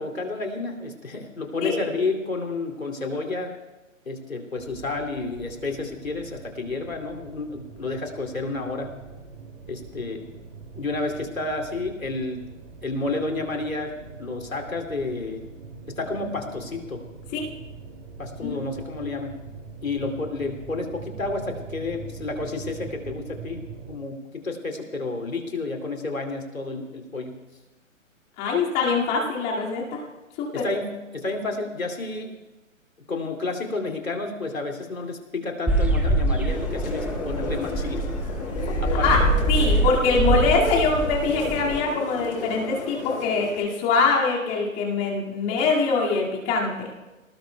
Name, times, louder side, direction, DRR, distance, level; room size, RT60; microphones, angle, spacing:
voice 1, 0.0-3.5 4.0-9.0 9.7-10.2 10.7-12.5 12.8-15.4 15.9-17.0 18.2-19.4 19.8-27.4 30.5-32.4 33.1-38.0 38.8-39.1, left 3 dB, 85° left, 2 dB, 2.8 m, -30 dB
sound 1, 4.5-24.0, right 4 dB, 30° right, 2.6 m, -42 dB
voice 2, 28.4-30.0 30.4-30.6 39.0-39.2 39.5-46.9, left 4 dB, 20° left, -3 dB, 2.2 m, -23 dB
sound 2, 35.7-41.8, right 2 dB, 5° right, 1.0 m, -24 dB
sound 3, 36.5-43.6, left 5 dB, 55° left, 3.6 m, -33 dB
28.5 x 19.5 x 2.3 m, 1.1 s
figure-of-eight pair, 130°, 40 cm